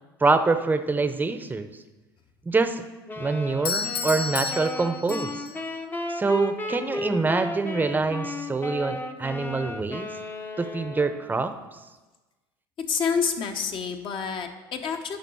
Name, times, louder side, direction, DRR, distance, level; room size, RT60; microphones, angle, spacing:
voice 1, 0.2-1.7 2.5-2.8 3.2-5.4 6.1-10.1 10.6-11.5, right 3 dB, 15° right, 9 dB, 0.7 m, -25 dB
sound 1, 3.1-11.4, left 2 dB, 15° left, 0.8 m, -34 dB
Doorbell, 3.7-5.7, left 5 dB, 80° left, 0.7 m, -31 dB
voice 2, 12.9-15.2, left 6 dB, 45° left, 5 dB, 1.1 m, -28 dB
11.0 x 3.9 x 6.2 m, 1.2 s
hypercardioid pair, 70°, 12 cm